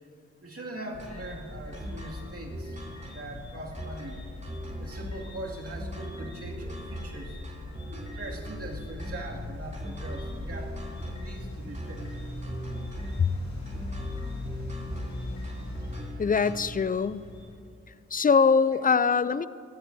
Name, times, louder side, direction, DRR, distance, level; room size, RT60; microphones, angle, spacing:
voice 1, 0.4-2.8 3.1-4.2 4.8-10.7 11.2-12.1 14.7-14.8, right 1 dB, 55° right, -2 dB, 2.4 m, -41 dB
sound 1, 0.9-17.5, left 2 dB, 70° left, 2.3 m, -40 dB
sound 2, 1.0-16.9, equal, 25° right, 3.0 m, -40 dB
voice 2, 16.2-17.3 18.1-19.5, left 5 dB, 30° left, 17 dB, 0.4 m, -23 dB
17.5 x 13.5 x 2.7 m, 2.4 s
cardioid pair, 40°, 29 cm